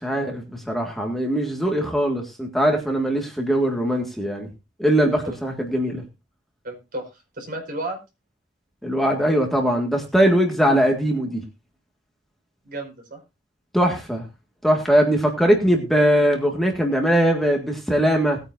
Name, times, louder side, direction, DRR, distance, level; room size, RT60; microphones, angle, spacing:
voice 1, 0.0-4.5 4.8-6.0 8.8-11.4 13.7-14.2 14.6-18.4, equal, ahead, 1 dB, 1.8 m, -21 dB
voice 2, 6.6-8.0 12.6-13.2, right 1 dB, 55° right, 3 dB, 5.2 m, -33 dB
19.5 x 9.2 x 2.6 m, 0.26 s
head